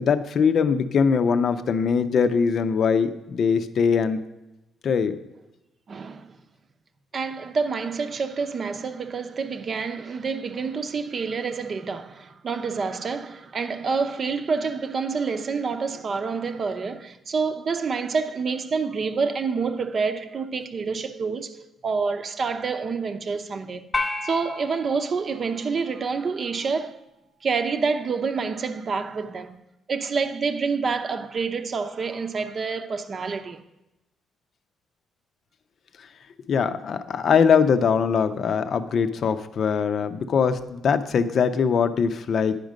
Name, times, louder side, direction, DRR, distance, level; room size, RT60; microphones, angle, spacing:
voice 1, 0.0-4.2 4.8-5.2 36.5-42.6, left 6 dB, 60° left, 0.6 m, -22 dB
voice 2, 5.9-6.4 7.1-23.8 24.2-27.0 27.4-29.6 29.9-33.6, right 5 dB, 45° right, 0.7 m, -28 dB
sound 1, 23.9-26.4, left 2 dB, 25° left, 0.9 m, -33 dB
9.9 x 5.2 x 6.2 m
cardioid pair, 90°, 0 cm